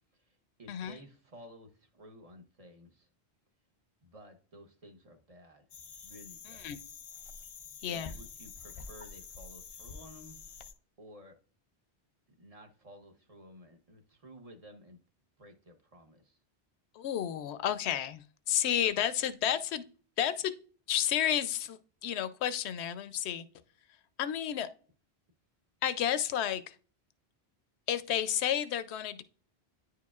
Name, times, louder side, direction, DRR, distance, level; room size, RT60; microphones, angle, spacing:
voice 1, 0.1-3.1 4.0-5.6 6.0-6.8 7.9-10.4 11.0-11.4 12.4-15.0 15.4-16.4, equal, 35° right, 0.9 m, -53 dB
voice 2, 0.7-1.0 6.4-6.8 7.8-8.1 16.9-19.8 20.2-20.5 20.9-23.5 23.9-24.7 25.8-26.8 27.9-29.2, left 10 dB, 80° left, 0.8 m, -31 dB
sound 1, 5.7-10.7, left 5 dB, 55° left, 0.3 m, -47 dB
9.7 x 4.6 x 2.4 m
omnidirectional pair, 1.1 m